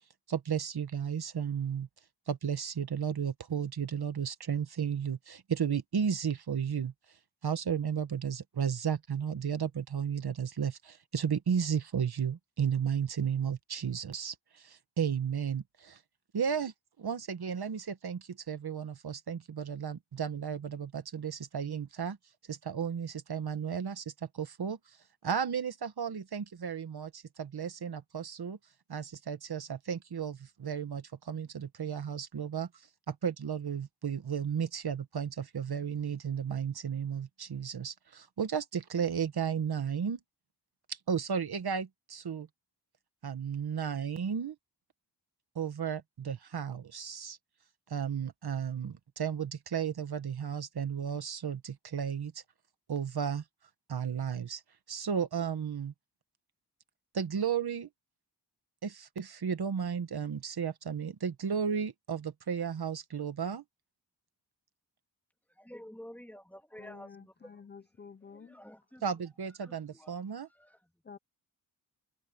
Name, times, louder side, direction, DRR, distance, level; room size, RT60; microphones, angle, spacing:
voice 1, 0.3-1.9 2.3-6.9 7.4-16.0 16.3-16.7 17.0-22.2 22.5-24.0 24.3-24.8 25.2-28.6 28.9-32.7 33.1-40.2 40.9-42.5 43.2-44.5 45.5-47.4 47.9-52.3 52.9-53.4 53.9-54.6 54.9-55.9 57.1-57.9 58.8-63.6 69.0-70.5, right 7 dB, 65° right, 1.3 m, -34 dB
voice 2, 65.5-67.6 68.2-69.3 69.6-70.2 70.5-70.9, equal, 5° left, 2.8 m, -51 dB
voice 3, 66.8-68.5 71.1-71.2, left 6 dB, 25° left, 0.5 m, -50 dB
wide cardioid pair, 140°, 41 cm